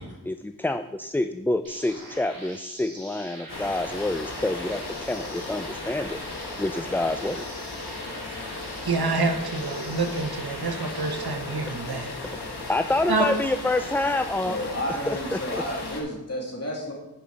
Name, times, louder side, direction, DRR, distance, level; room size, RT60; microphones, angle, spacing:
voice 1, 0.3-4.8 5.1-6.2 6.6-7.5 12.7-14.6 15.1-15.6, left 2 dB, 5° left, 9 dB, 0.3 m, -27 dB
sound 1, 1.6-11.3, right 1 dB, 60° right, 2.5 m, -44 dB
sound 2, 3.5-16.0, left 2 dB, 85° left, 1.5 m, -36 dB
voice 2, 8.8-12.1 13.1-13.3, right 3 dB, 75° right, 5 dB, 1.1 m, -27 dB
voice 3, 14.4-16.9, equal, 40° left, -2 dB, 2.8 m, -31 dB
10.5 x 5.6 x 4.8 m, 0.95 s
wide cardioid pair, 45°, 38 cm